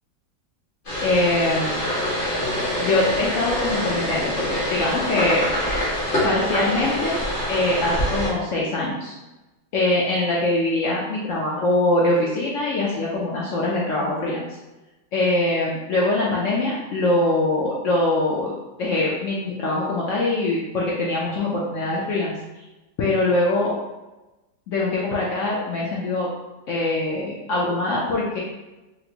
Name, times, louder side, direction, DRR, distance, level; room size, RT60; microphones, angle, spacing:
sound 1, 0.8-8.3, equal, 35° left, 1.2 m, -25 dB
voice 1, 1.0-1.8 2.8-5.5 6.2-7.2 7.5-9.1 9.7-14.4 15.1-18.5 18.8-22.4 23.0-23.7 24.7-26.3 26.7-28.4, left 2 dB, 70° left, -5 dB, 0.7 m, -23 dB
4.2 x 2.0 x 2.8 m, 1.1 s
omnidirectional pair, 1.8 m